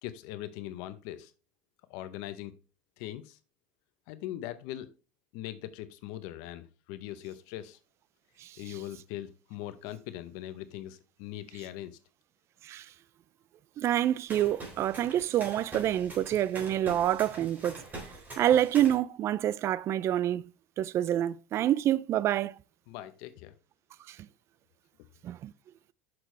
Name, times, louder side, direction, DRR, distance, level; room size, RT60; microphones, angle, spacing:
voice 1, 0.0-1.3 1.9-2.5 3.0-3.4 4.1-4.9 5.3-7.8 8.6-12.0 22.9-23.5, left 13 dB, 70° left, 0.7 m, -41 dB
voice 2, 13.8-17.8 18.4-20.4 20.8-22.5 24.1-24.2 25.2-25.5, right 11 dB, 40° right, 0.3 m, -27 dB
sound 1, 14.3-18.9, right 2 dB, 25° right, 3.6 m, -44 dB
6.2 x 6.0 x 3.2 m
supercardioid pair, 105°, 7 cm